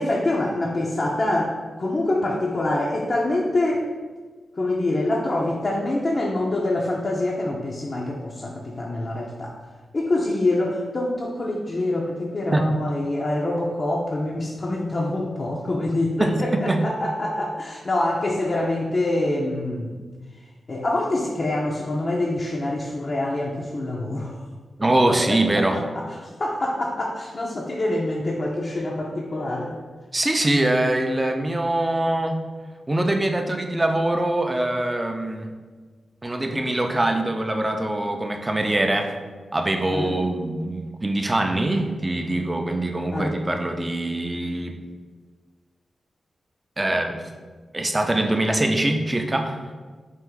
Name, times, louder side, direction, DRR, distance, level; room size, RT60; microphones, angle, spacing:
voice 1, 0.0-3.8 4.6-9.5 9.9-20.0 20.7-24.4 25.1-29.7 39.9-40.2 43.1-43.3, left 1 dB, 45° left, -2 dB, 0.5 m, -25 dB
voice 2, 16.2-16.8 24.8-25.8 30.1-32.4 32.9-35.5 36.2-39.1 39.5-44.8 46.8-47.2 47.7-49.6, right 1 dB, 25° right, 4 dB, 0.5 m, -23 dB
4.4 x 2.5 x 3.7 m, 1.4 s
cardioid pair, 60°, 0 cm